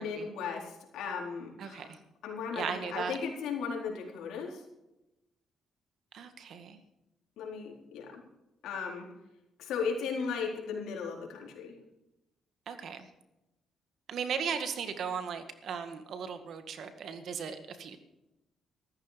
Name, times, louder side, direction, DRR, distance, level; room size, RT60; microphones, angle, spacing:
voice 1, 0.0-1.9 2.2-4.6 7.4-8.2 8.6-9.1 9.6-11.8, left 5 dB, 85° left, 0 dB, 4.2 m, -36 dB
voice 2, 1.6-2.0 2.5-3.2 6.1-6.8 12.7-13.0 14.1-18.0, right 6 dB, 65° right, 9 dB, 1.8 m, -37 dB
14.0 x 13.5 x 5.2 m, 0.94 s
cardioid pair, 90°, 0 cm